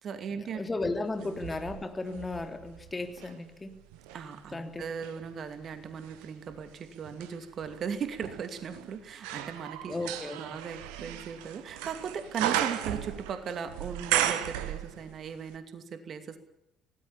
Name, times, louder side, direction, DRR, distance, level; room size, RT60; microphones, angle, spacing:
voice 1, 0.0-0.6 1.2-1.3 4.1-16.4, right 6 dB, 45° right, 9 dB, 2.5 m, -38 dB
voice 2, 0.5-3.8 4.5-4.8 9.9-10.4, left 2 dB, 20° left, 6 dB, 3.3 m, -35 dB
sound 1, 1.2-3.4 3.9-15.3 15.5-15.6, right 12 dB, 65° right, 1.5 m, -35 dB
25.0 x 19.0 x 7.2 m, 0.85 s
figure-of-eight pair, 50°, 0 cm